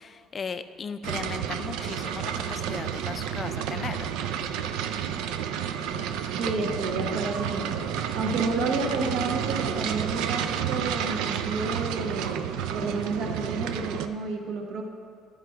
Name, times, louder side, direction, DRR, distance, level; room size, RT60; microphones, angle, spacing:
voice 1, 0.0-4.1, left 5 dB, 25° left, 10 dB, 0.4 m, -37 dB
sound 1, 1.0-14.1, right 9 dB, 80° right, 0.4 m, -30 dB
sound 2, 2.0-11.7, right 2 dB, 40° right, 1.0 m, -50 dB
voice 2, 6.4-12.5 12.7-14.8, right 3 dB, 60° right, 2 dB, 1.2 m, -31 dB
12.5 x 5.0 x 4.6 m, 2.3 s
cardioid pair, 150°, 0 cm